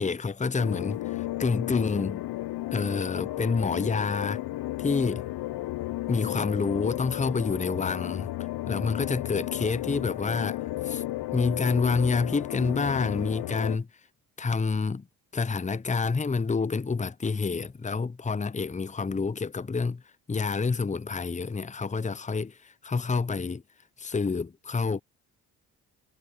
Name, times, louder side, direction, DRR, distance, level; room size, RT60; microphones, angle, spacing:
voice 1, 0.0-2.2 2.7-4.4 4.8-5.3 6.1-8.3 8.7-11.0 11.3-13.9 14.4-15.1 15.3-20.0 20.3-23.6 24.0-25.0, left 4 dB, 15° left, 1.0 m, -28 dB
sound 1, 0.6-13.8, left 17 dB, 60° left, 0.9 m, -33 dB
hypercardioid pair, 55°, 44 cm